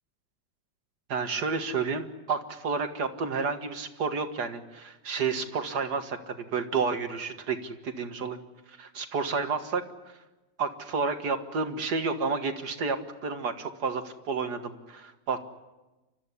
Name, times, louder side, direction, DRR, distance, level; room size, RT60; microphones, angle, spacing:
voice 1, 1.1-8.4 8.8-9.8 10.6-15.4, right 4 dB, 55° right, 7 dB, 2.1 m, -30 dB
29.5 x 14.0 x 9.8 m, 1.1 s
omnidirectional pair, 2.2 m